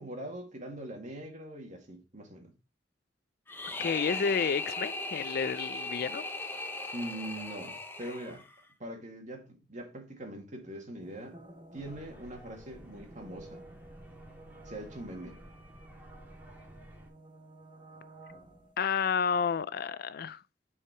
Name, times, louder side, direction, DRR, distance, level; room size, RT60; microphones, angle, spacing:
voice 1, 0.0-2.5 6.9-8.4 8.8-11.4 11.7-13.6 14.6-15.4, right 1 dB, 45° right, 2.0 m, -42 dB
sound 1, 3.5-8.6, left 2 dB, 15° left, 0.8 m, -38 dB
voice 2, 3.8-6.2 18.8-20.4, left 6 dB, 60° left, 0.4 m, -30 dB
sound 2, 11.0-18.7, right 2 dB, 30° right, 1.2 m, -53 dB
sound 3, 11.7-17.1, equal, 10° right, 1.9 m, -53 dB
6.1 x 4.8 x 4.5 m
head